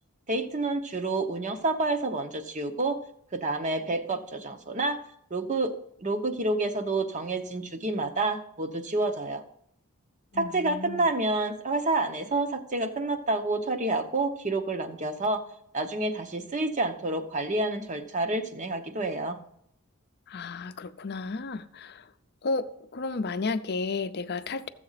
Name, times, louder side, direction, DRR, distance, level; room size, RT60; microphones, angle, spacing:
voice 1, 0.3-3.0 3.3-5.0 5.3-5.7 6.0-9.4 10.4-15.4 15.7-19.4, right 2 dB, 35° right, 0.9 m, -28 dB
voice 2, 10.3-11.1 20.3-22.1 22.4-24.7, left 3 dB, 50° left, 0.6 m, -33 dB
14.0 x 7.6 x 4.1 m
head